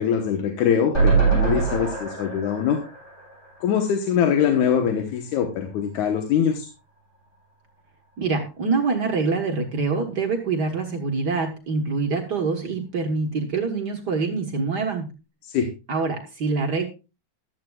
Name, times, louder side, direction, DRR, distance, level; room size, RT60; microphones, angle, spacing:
voice 1, 0.0-2.8 3.6-6.7 15.4-15.7, left 8 dB, 80° left, 4 dB, 2.6 m, -23 dB
sound 1, 0.9-4.2 4.5-4.6 4.9-5.0, right 5 dB, 30° left, 7.6 m, -24 dB
voice 2, 8.2-15.1 15.9-16.9, right 4 dB, 50° right, 3 dB, 1.3 m, -25 dB
14.5 x 12.0 x 2.3 m, 0.30 s
omnidirectional pair, 3.4 m